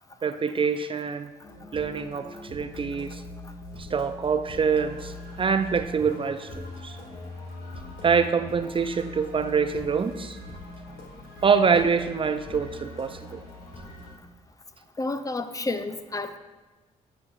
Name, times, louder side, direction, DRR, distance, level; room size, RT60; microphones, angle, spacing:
voice 1, 0.2-1.3 1.7-3.2 3.8-7.0 8.0-10.4 11.4-13.4, right 6 dB, 35° right, 10 dB, 0.4 m, -25 dB
sound 1, 1.4-14.1, left 2 dB, 65° left, 1.8 m, -41 dB
voice 2, 15.0-16.4, left 2 dB, 20° left, 9 dB, 0.5 m, -30 dB
9.5 x 6.4 x 2.4 m, 1.2 s
hypercardioid pair, 50°, 16 cm